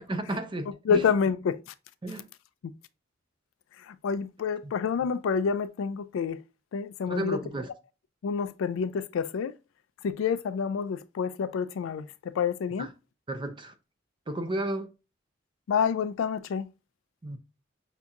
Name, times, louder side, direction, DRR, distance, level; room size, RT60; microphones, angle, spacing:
voice 1, 0.1-1.0 2.0-2.3 4.6-4.7 7.1-7.7 12.8-12.9 13.3-13.7 14.3-14.9 17.2-17.4, right 1 dB, 25° right, 0.5 m, -33 dB
voice 2, 0.9-1.7 3.8-6.4 6.7-7.4 8.2-9.6 10.0-12.9 15.7-16.7, left 6 dB, 75° left, 0.3 m, -28 dB
5.7 x 2.7 x 2.3 m
head